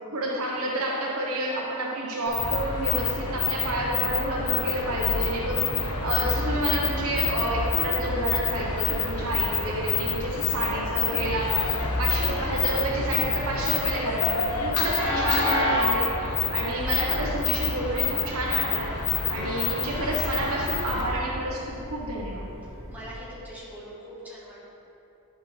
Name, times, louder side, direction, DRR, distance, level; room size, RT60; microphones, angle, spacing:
voice 1, 0.1-18.9 19.3-22.5, right 1 dB, 70° right, -2 dB, 1.1 m, -29 dB
sound 1, 2.3-21.2, left 6 dB, 80° left, 0.8 m, -28 dB
Train, 4.6-23.1, equal, 25° left, 1.7 m, -35 dB
voice 2, 22.9-24.6, equal, 5° right, -8 dB, 1.7 m, -42 dB
10.5 x 5.4 x 3.2 m, 2.9 s
head